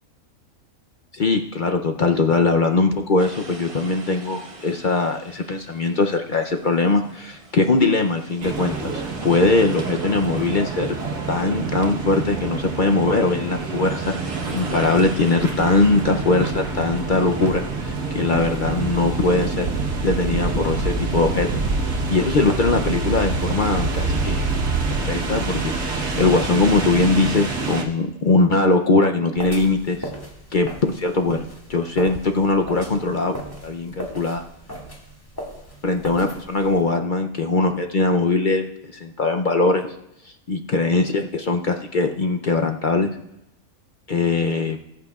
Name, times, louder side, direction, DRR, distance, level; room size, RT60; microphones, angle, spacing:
voice 1, 1.1-11.0 11.3-14.1 14.5-19.7 20.0-21.5 21.9-24.4 25.0-30.1 30.5-31.4 31.7-34.4 35.8-38.6 38.9-39.9 40.5-43.1 44.1-44.8, left 3 dB, 50° left, 4 dB, 0.6 m, -21 dB
sound 1, 3.2-17.5, right 2 dB, 30° right, 0.8 m, -42 dB
sound 2, 8.4-27.8, right 3 dB, 65° right, 1.6 m, -26 dB
sound 3, 29.4-36.8, equal, 15° left, 1.9 m, -37 dB
19.5 x 8.6 x 2.4 m, 0.84 s
omnidirectional pair, 1.5 m